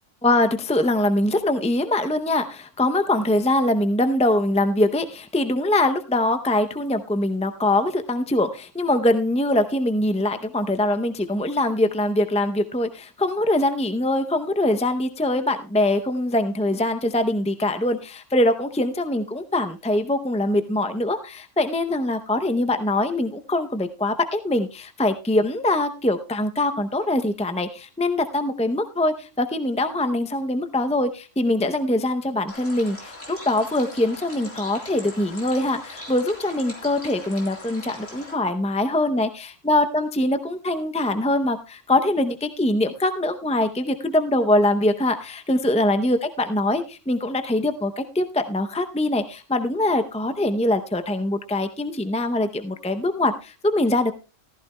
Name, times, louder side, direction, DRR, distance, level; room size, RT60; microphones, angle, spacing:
voice 1, 0.2-54.1, left 1 dB, 10° left, 8 dB, 0.3 m, -23 dB
sound 1, 32.5-38.3, left 1 dB, 80° left, 4.1 m, -40 dB
14.5 x 14.5 x 2.2 m, 0.32 s
omnidirectional pair, 1.3 m